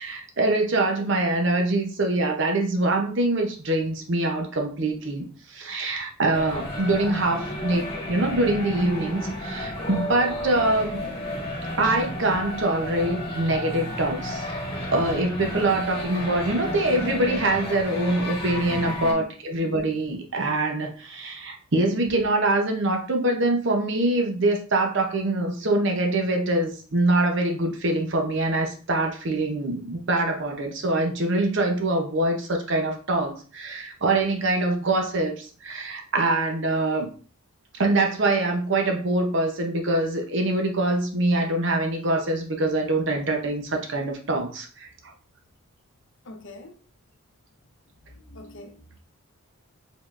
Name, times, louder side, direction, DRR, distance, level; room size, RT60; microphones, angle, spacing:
voice 1, 0.0-7.8 8.1-11.0 11.8-14.4 14.9-37.1 37.7-45.1, right 2 dB, 55° right, 0.7 m, -24 dB
sound 1, 6.3-19.1, equal, 25° left, 1.4 m, -32 dB
voice 2, 7.4-7.7 19.0-19.3 46.2-46.7 48.0-49.0, left 1 dB, 55° left, 0.7 m, -42 dB
5.0 x 3.6 x 2.5 m
head